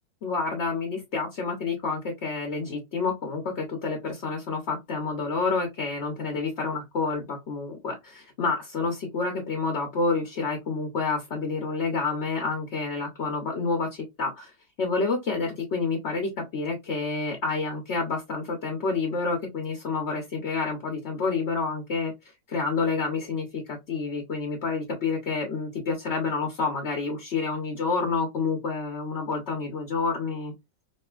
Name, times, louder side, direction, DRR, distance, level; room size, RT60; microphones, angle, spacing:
voice 1, 0.2-14.5 14.8-22.1 22.5-30.5, left 4 dB, 50° left, 0.8 m, -29 dB
5.2 x 2.5 x 2.4 m
omnidirectional pair, 2.0 m